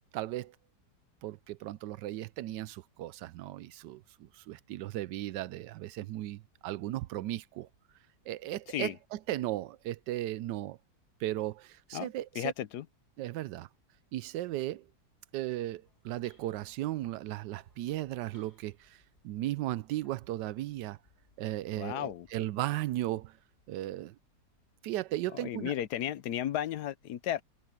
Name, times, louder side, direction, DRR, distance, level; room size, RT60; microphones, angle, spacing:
voice 1, 0.1-0.5 1.2-7.7 8.3-10.8 11.2-12.4 13.2-13.7 14.1-14.8 15.3-19.0 19.2-21.0 21.4-23.4 23.7-24.1 24.8-25.7, right 14 dB, 90° right, 1.2 m, -36 dB
voice 2, 12.3-12.9 21.8-22.3 25.3-27.4, left 11 dB, 75° left, 1.3 m, -34 dB
sound 1, 15.7-22.6, left 2 dB, 35° left, 5.0 m, -68 dB
omnidirectional pair, 1.8 m